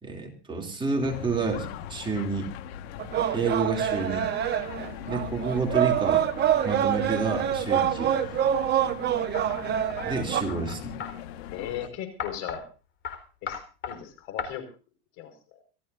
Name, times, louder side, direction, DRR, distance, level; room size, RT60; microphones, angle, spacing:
voice 1, 0.0-2.5 3.3-4.3 5.0-6.3 6.6-8.1 10.0-11.0, right 4 dB, 15° right, 1 dB, 2.9 m, -29 dB
sound 1, 1.0-11.9, left 10 dB, 70° left, 1.7 m, -40 dB
sound 2, 3.0-10.4, right 10 dB, 30° right, 1.3 m, -26 dB
sound 3, 9.3-11.1 12.2-12.6 13.0-13.2 13.5-14.0 14.4-14.5, left 7 dB, 35° left, 4.3 m, -36 dB
voice 2, 11.5-12.7 13.4-13.6 13.9-14.6 15.2-15.3, left 10 dB, 55° left, 7 dB, 5.3 m, -36 dB
26.0 x 15.0 x 2.7 m, 0.34 s
supercardioid pair, 125°, 32 cm